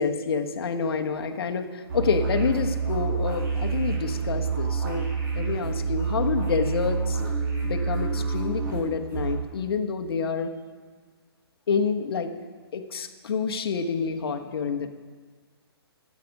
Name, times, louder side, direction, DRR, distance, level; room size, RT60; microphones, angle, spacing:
voice 1, 0.0-5.1 5.3-7.2 7.6-10.5 11.7-12.3 12.7-14.9, left 5 dB, 65° left, 5 dB, 1.3 m, -28 dB
sound 1, 1.9-9.3, right 5 dB, 50° right, 4.5 m, -28 dB
14.0 x 8.6 x 5.4 m, 1.5 s
hypercardioid pair, 145°, 14 cm